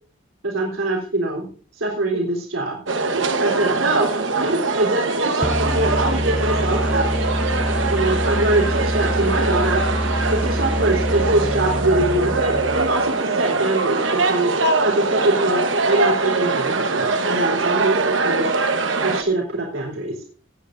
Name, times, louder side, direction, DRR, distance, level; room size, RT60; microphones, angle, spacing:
voice 1, 0.4-1.5 1.8-2.8 3.4-7.1 7.9-9.8 10.3-14.0 14.3-14.5 14.8-18.5 19.0-20.1, right 2 dB, 85° right, -3 dB, 3.6 m, -23 dB
sound 1, 2.9-19.2, right 3 dB, 70° right, 1.2 m, -22 dB
sound 2, 5.4-13.1, equal, 5° right, 0.6 m, -25 dB
18.5 x 9.5 x 2.6 m, 0.42 s
head